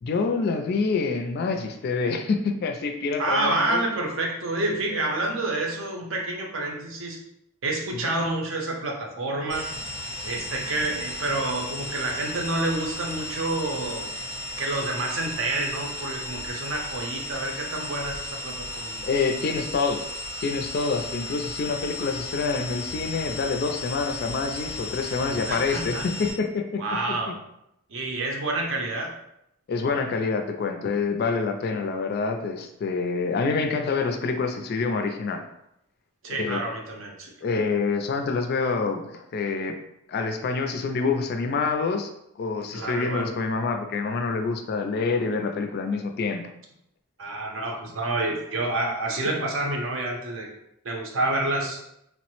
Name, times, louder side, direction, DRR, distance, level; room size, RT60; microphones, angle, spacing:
voice 1, 0.0-3.8 7.9-8.1 19.0-20.0 20.4-26.8 29.7-35.4 36.3-36.6 37.4-39.8 40.1-42.1 42.4-46.4, left 4 dB, 50° left, 6 dB, 0.3 m, -27 dB
voice 2, 3.2-7.2 7.6-9.7 10.2-14.1 14.6-19.0 25.5-26.0 26.8-27.4 27.9-29.1 36.2-37.3 42.7-43.3 47.2-50.5 50.8-51.8, right 2 dB, 65° right, 1 dB, 0.6 m, -28 dB
sound 1, 9.5-26.3, left 2 dB, 15° right, 0.6 m, -35 dB
3.1 x 2.0 x 3.0 m, 0.80 s
head